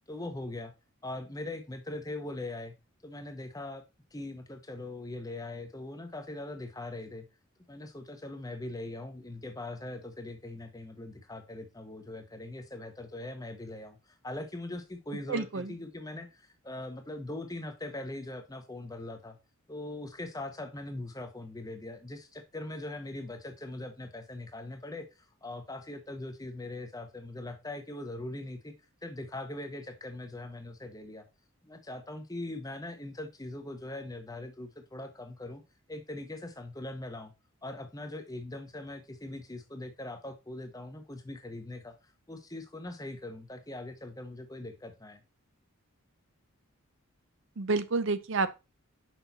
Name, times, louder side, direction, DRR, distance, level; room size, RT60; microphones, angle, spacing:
voice 1, 0.1-0.7 1.0-2.7 3.0-3.8 4.1-7.3 7.7-19.4 19.7-25.1 25.4-28.7 29.0-31.2 31.6-35.6 35.9-37.3 37.6-41.9 42.3-45.2, left 2 dB, 15° left, 0.9 m, -41 dB
voice 2, 15.3-15.8 47.6-48.5, right 3 dB, 55° right, 0.6 m, -29 dB
6.1 x 5.5 x 4.0 m
head